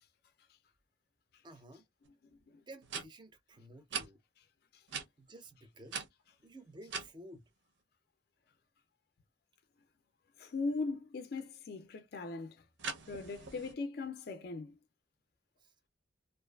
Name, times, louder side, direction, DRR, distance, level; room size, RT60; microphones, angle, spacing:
voice 1, 1.4-1.9 2.7-4.2 5.2-6.0 6.4-7.5 15.6-15.7, right 1 dB, 25° right, 0.4 m, -53 dB
sound 1, 2.0-2.1 2.8-3.0 3.9-4.1 4.9-5.1 5.9-7.1 12.8-13.7, right 5 dB, 80° right, 0.6 m, -40 dB
voice 2, 10.4-12.6 13.1-14.8, left 3 dB, 55° left, 0.4 m, -39 dB
2.5 x 2.3 x 2.2 m
head